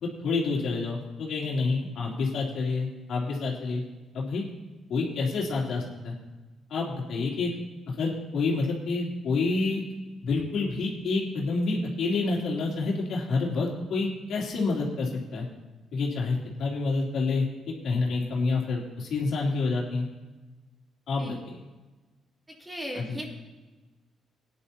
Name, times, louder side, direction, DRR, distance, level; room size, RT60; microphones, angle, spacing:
voice 1, 0.0-3.8 4.1-4.5 4.9-6.1 6.7-7.5 7.9-9.8 10.2-15.5 15.9-20.0 21.1-21.5 23.0-23.2, left 3 dB, 70° left, -2 dB, 3.1 m, -28 dB
voice 2, 22.5-23.3, equal, 10° right, -1 dB, 2.5 m, -37 dB
17.5 x 10.5 x 2.9 m, 1.2 s
cardioid pair, 90°, 0 cm